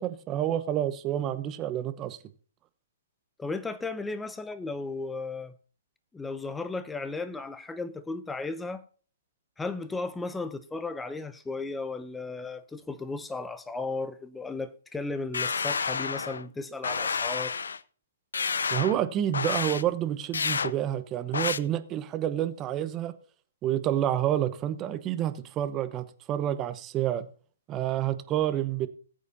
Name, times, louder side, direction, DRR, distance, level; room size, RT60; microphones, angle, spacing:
voice 1, 0.0-2.2 18.7-23.1 23.6-27.3 27.7-28.9, right 11 dB, 25° right, 1.0 m, -29 dB
voice 2, 3.4-5.5 6.1-8.8 9.6-17.5, left 3 dB, 5° left, 0.8 m, -35 dB
sound 1, 15.3-16.4 16.8-17.8 18.3-19.0 19.3-19.8 20.3-20.7 21.3-21.6, left 5 dB, 75° left, 0.6 m, -29 dB
19.0 x 8.3 x 2.7 m
figure-of-eight pair, 125°, 0 cm